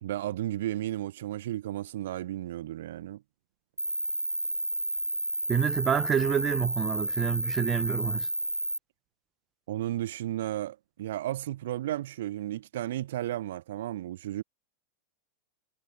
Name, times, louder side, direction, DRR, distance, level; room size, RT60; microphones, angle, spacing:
voice 1, 0.0-3.2 9.7-14.4, right 13 dB, 55° right, 1.1 m, -33 dB
Cricket, 3.8-8.8, right 1 dB, 90° right, 3.8 m, -31 dB
voice 2, 5.5-8.3, right 8 dB, 25° right, 1.3 m, -28 dB
figure-of-eight pair, 90°, 0 cm